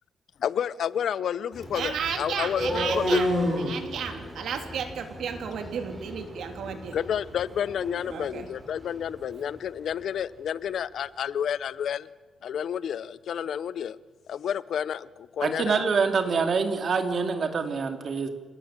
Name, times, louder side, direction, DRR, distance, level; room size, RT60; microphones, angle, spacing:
voice 1, 0.4-3.2 6.9-12.1 12.4-14.0 14.3-15.8, left 9 dB, 65° left, 0.7 m, -30 dB
sound 1, 1.5-9.5, left 1 dB, 10° right, 7.5 m, -32 dB
voice 2, 1.7-7.0 8.1-8.5, right 7 dB, 75° right, 3.3 m, -33 dB
voice 3, 15.4-18.3, right 5 dB, 45° right, 2.8 m, -25 dB
28.0 x 18.5 x 7.5 m
cardioid pair, 135°, 0 cm